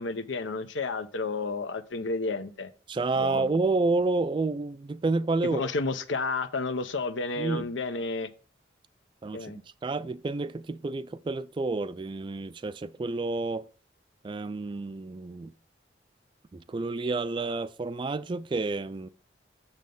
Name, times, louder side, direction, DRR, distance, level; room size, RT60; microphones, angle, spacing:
voice 1, 0.0-2.7 3.2-3.5 5.4-8.3 9.3-9.6, left 3 dB, 80° left, 0.7 m, -31 dB
voice 2, 2.9-5.6 7.4-7.7 9.2-9.5 9.8-13.7 14.2-15.5 16.5-19.1, right 3 dB, 25° right, 0.3 m, -29 dB
7.3 x 6.7 x 3.8 m
head